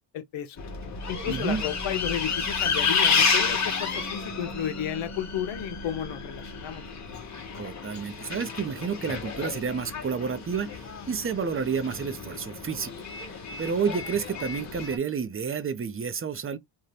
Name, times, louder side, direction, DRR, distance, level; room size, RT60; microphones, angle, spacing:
voice 1, 0.1-0.6 1.1-6.8, left 10 dB, 75° left, 0.7 m, -33 dB
Bus, 0.6-15.0, left 5 dB, 35° left, 1.0 m, -31 dB
voice 2, 1.3-1.6 7.6-12.9 13.6-16.6, right 6 dB, 30° right, 0.6 m, -30 dB
2.6 x 2.3 x 3.2 m
cardioid pair, 85°, 47 cm